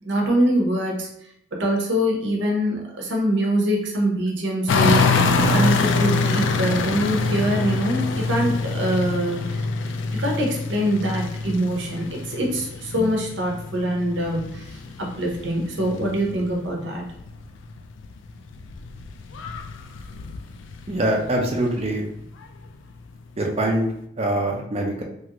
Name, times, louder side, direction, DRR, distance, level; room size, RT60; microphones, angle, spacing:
voice 1, 0.0-1.1 1.5-9.7 10.1-17.0, right 1 dB, 75° right, 0 dB, 0.8 m, -24 dB
sound 1, 4.7-16.7 17.0-21.9 22.4-22.5, left 4 dB, 85° left, 0.3 m, -25 dB
voice 2, 20.9-22.1 23.4-23.9 24.2-25.0, right 1 dB, 30° right, 1 dB, 0.5 m, -23 dB
3.1 x 2.4 x 2.9 m, 0.74 s
head